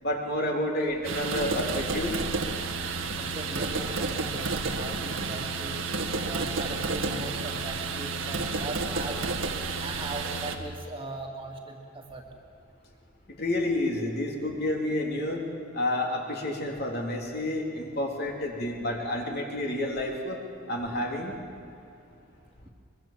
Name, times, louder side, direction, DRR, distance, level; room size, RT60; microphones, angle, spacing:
voice 1, 0.0-2.2 13.4-15.4 15.7-20.4 20.7-21.3, left 1 dB, 50° left, 0 dB, 3.4 m, -29 dB
sound 1, 1.0-10.6, right 3 dB, 70° right, 1.8 m, -31 dB
voice 2, 3.0-5.8 6.2-9.2 9.8-12.2, right 2 dB, 25° right, 1 dB, 2.2 m, -39 dB
24.0 x 23.0 x 7.5 m, 2.5 s
head